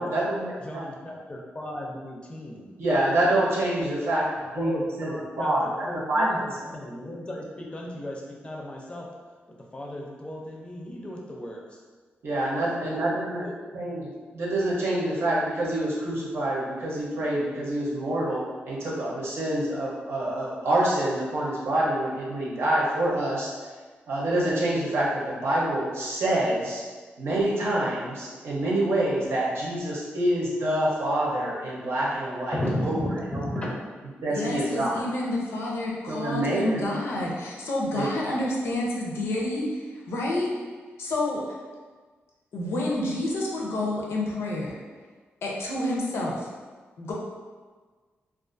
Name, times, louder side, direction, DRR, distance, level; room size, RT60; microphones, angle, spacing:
voice 1, 0.0-0.8 2.8-4.2 4.5-5.1 5.4-6.4 12.2-13.5 13.7-23.5 24.1-26.8 27.2-33.7 34.2-35.0 36.1-36.9 37.9-38.1, right 1 dB, 75° right, -5 dB, 0.7 m, -26 dB
voice 2, 0.6-2.7 4.6-9.1 9.7-11.6 12.8-13.6 32.5-33.1 33.4-33.7, left 1 dB, 25° left, -1 dB, 0.4 m, -35 dB
voice 3, 34.3-40.5 41.0-41.4 42.5-44.8 45.4-46.5 47.0-47.1, left 1 dB, 85° left, -3 dB, 0.5 m, -29 dB
2.4 x 2.4 x 2.4 m, 1.4 s
cardioid pair, 100°, 4 cm